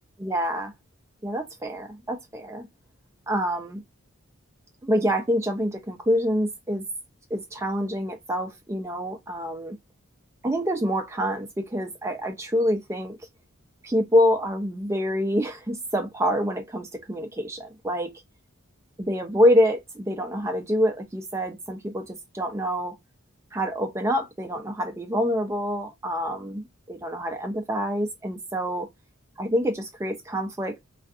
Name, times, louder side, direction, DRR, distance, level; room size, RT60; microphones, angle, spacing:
voice 1, 0.2-0.7 1.2-2.7 3.3-3.8 4.8-6.8 7.3-9.8 10.4-13.2 13.8-18.1 19.0-23.0 23.5-28.9 29.4-30.8, equal, 15° right, 0.4 m, -26 dB
2.4 x 2.3 x 2.4 m
head